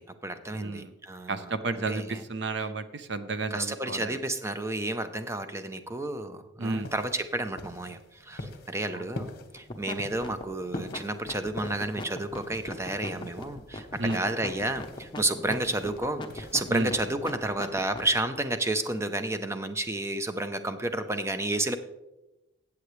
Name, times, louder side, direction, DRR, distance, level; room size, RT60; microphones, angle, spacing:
voice 1, 0.0-2.2 3.5-21.8, right 2 dB, 15° right, 9 dB, 0.6 m, -31 dB
voice 2, 0.5-0.9 1.3-4.1 6.6-6.9 8.9-9.0 14.0-14.2 16.7-16.9, right 2 dB, 60° right, 11 dB, 0.7 m, -32 dB
sound 1, 6.6-16.7, left 1 dB, 50° left, 1.1 m, -45 dB
sound 2, 9.6-9.9 10.2-18.1, left 2 dB, 25° left, 0.9 m, -38 dB
15.0 x 8.4 x 3.2 m, 0.99 s
head